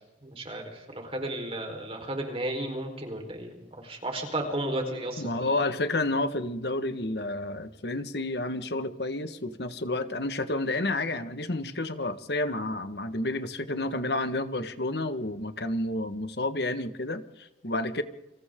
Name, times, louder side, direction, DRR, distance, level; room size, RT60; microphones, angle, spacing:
voice 1, 0.2-5.6, right 1 dB, 30° right, 3 dB, 4.4 m, -34 dB
voice 2, 5.2-18.0, left 2 dB, 65° left, 9 dB, 1.6 m, -30 dB
29.5 x 27.0 x 3.8 m, 0.98 s
head